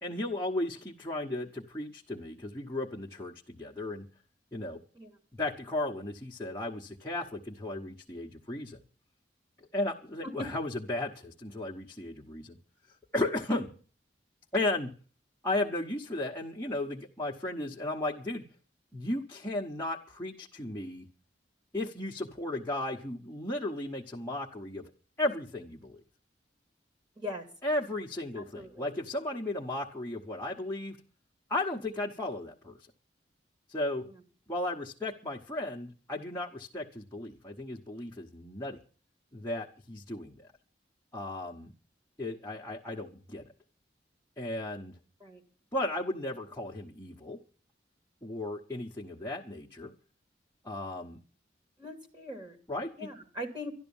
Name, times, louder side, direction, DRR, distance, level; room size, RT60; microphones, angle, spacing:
voice 1, 0.0-4.1 4.5-4.8 5.3-8.8 9.7-12.6 13.1-13.7 14.5-14.9 15.4-18.4 18.9-21.1 21.7-24.9 25.2-26.0 27.6-31.0 31.5-32.8 33.7-34.0 34.5-38.8 39.3-40.5 41.1-41.7 42.2-43.4 44.4-44.9 45.7-47.4 48.2-49.9 50.6-51.2 52.7-53.1, left 1 dB, 15° left, -2 dB, 1.1 m, -35 dB
voice 2, 28.4-28.9 45.2-45.4 51.8-52.6 53.0-53.7, left 1 dB, 25° right, 4 dB, 2.4 m, -40 dB
12.0 x 12.0 x 7.1 m, 0.41 s
head